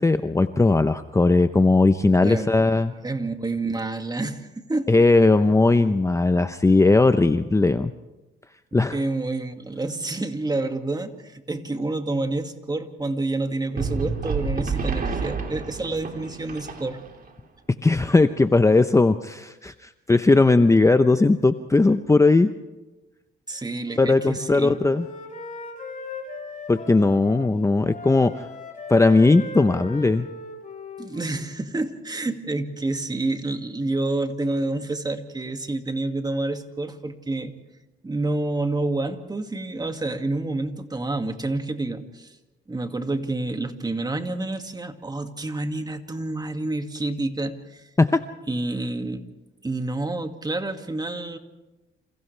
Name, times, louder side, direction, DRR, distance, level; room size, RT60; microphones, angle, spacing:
voice 1, 0.0-2.9 4.9-7.9 8.7-9.0 17.8-22.5 24.0-25.1 26.7-28.4 28.9-30.3 48.0-48.2, left 3 dB, 15° left, 10 dB, 0.8 m, -18 dB
voice 2, 2.2-2.7 3.0-4.9 8.9-17.0 23.5-24.8 31.0-37.5 38.0-42.4 42.7-47.9 48.5-49.2 49.6-51.4, right 2 dB, 20° right, 6 dB, 2.2 m, -28 dB
sound 1, 13.8-17.3, right 4 dB, 45° right, 3.9 m, -29 dB
Wind instrument woodwind instrument, 23.8-27.5 27.8-31.5, left 3 dB, 40° left, 5.6 m, -38 dB
29.0 x 27.5 x 3.4 m, 1.1 s
cardioid pair, 90°, 20 cm